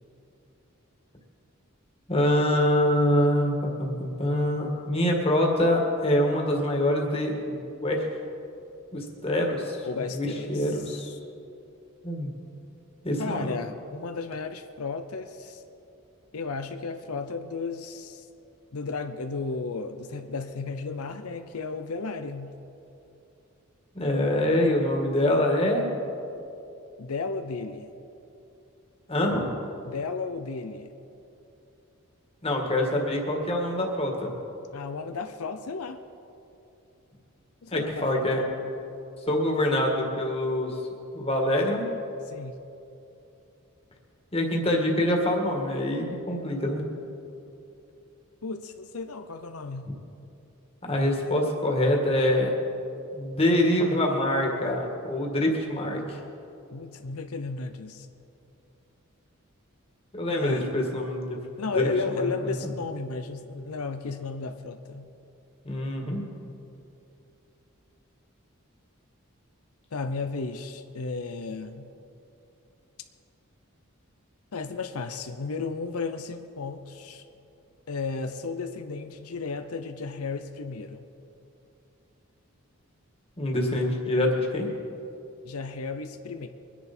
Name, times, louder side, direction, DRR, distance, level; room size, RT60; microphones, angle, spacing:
voice 1, 2.1-8.0 8.9-9.9 10.1-11.2 12.0-12.3 13.0-13.5 23.9-25.9 29.1-29.5 32.4-34.3 37.7-38.4 39.3-40.8 41.1-41.9 44.3-46.8 50.8-52.5 53.1-56.2 60.1-61.4 62.1-62.5 65.6-66.2 83.4-84.7, left 1 dB, 25° left, 0 dB, 1.9 m, -25 dB
voice 2, 9.8-11.1 13.2-15.6 16.3-18.3 18.7-22.6 27.0-27.9 29.8-30.9 34.7-36.0 37.6-38.4 42.2-42.5 48.4-49.9 56.7-58.1 60.4-60.7 61.6-65.1 69.9-71.9 74.5-77.2 77.9-81.1 85.4-86.5, left 4 dB, 90° left, 8 dB, 0.7 m, -34 dB
23.5 x 10.5 x 4.4 m, 2.8 s
head